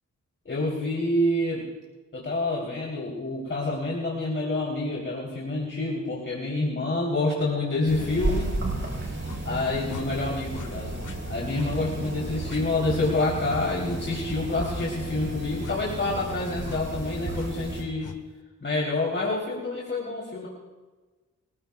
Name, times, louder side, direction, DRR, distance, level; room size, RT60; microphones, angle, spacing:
voice 1, 0.4-1.7 2.1-8.5 9.4-10.9 11.3-18.1 18.6-20.5, left 2 dB, 40° left, -4 dB, 3.4 m, -27 dB
sound 1, 7.9-17.8, right 2 dB, 40° right, 4.5 m, -33 dB
sound 2, 9.2-9.4 9.9-10.1 10.5-10.7 11.0-11.2 11.5-11.7 12.0-12.2 12.5-12.6 13.0-13.2 13.9-14.0 14.7-14.9 15.6-15.8 16.6-16.8 17.3-17.5 18.0-18.2, left 6 dB, 85° left, 1.3 m, -42 dB
25.5 x 15.5 x 2.3 m, 1.3 s
cardioid pair, 75°, 30 cm